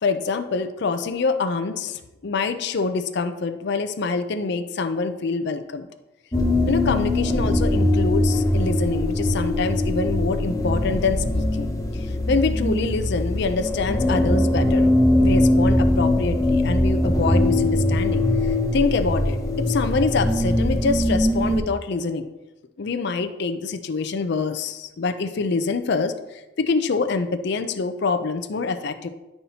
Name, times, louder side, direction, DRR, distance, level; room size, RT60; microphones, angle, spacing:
voice 1, 0.0-5.9 6.7-11.7 11.9-14.9 15.1-18.2 18.7-22.3 22.8-29.1, left 4 dB, 50° left, 8 dB, 0.5 m, -25 dB
sound 1, 6.3-21.6, left 1 dB, 15° left, 0.7 m, -21 dB
10.5 x 5.5 x 2.8 m, 1.0 s
head